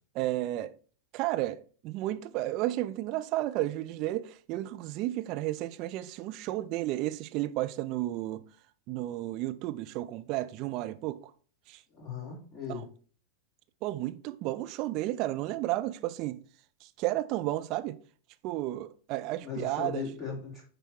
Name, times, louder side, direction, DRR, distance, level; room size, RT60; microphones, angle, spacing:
voice 1, 0.1-0.7 1.1-8.4 8.9-11.2 11.7-11.8 12.7-12.8 13.8-16.4 16.8-18.0 18.4-20.1, right 16 dB, 40° right, 0.5 m, -32 dB
voice 2, 11.9-12.9 19.4-20.6, left 5 dB, 15° left, 3.4 m, -38 dB
10.0 x 3.4 x 4.5 m
figure-of-eight pair, 90°, 0 cm